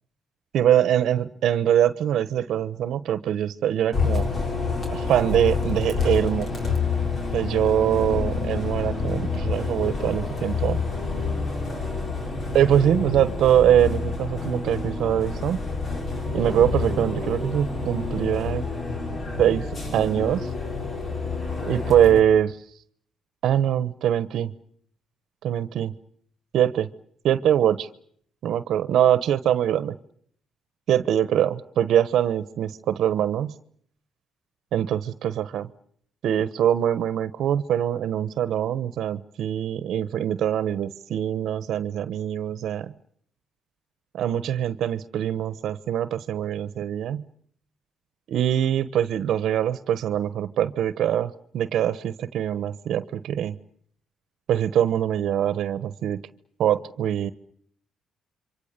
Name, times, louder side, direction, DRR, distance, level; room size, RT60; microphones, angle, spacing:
voice 1, 0.5-4.3 4.9-6.5 7.3-10.8 12.5-15.6 16.3-18.6 19.4-19.7 19.9-20.5 21.7-22.6 23.4-24.5 25.4-25.9 26.5-26.9 27.2-27.9 28.4-29.9 30.9-33.5 34.7-35.7 36.2-42.9 44.1-47.2 48.3-53.6 54.5-56.2 56.6-57.3, right 10 dB, 75° right, 14 dB, 1.1 m, -23 dB
Bus, 3.9-22.2, left 4 dB, 45° left, 6.1 m, -28 dB
28.0 x 25.0 x 6.8 m, 0.64 s
cardioid pair, 90°, 0 cm